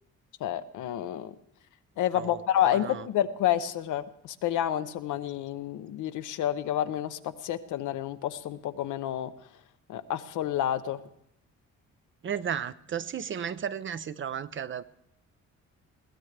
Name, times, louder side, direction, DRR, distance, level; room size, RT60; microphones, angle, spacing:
voice 1, 0.4-1.3 2.0-9.3 9.9-11.0, left 11 dB, 80° left, 11 dB, 0.8 m, -29 dB
voice 2, 2.6-3.0 12.2-14.8, right 8 dB, 40° right, 14 dB, 0.6 m, -34 dB
21.5 x 15.5 x 3.3 m, 0.76 s
cardioid pair, 90°, 30 cm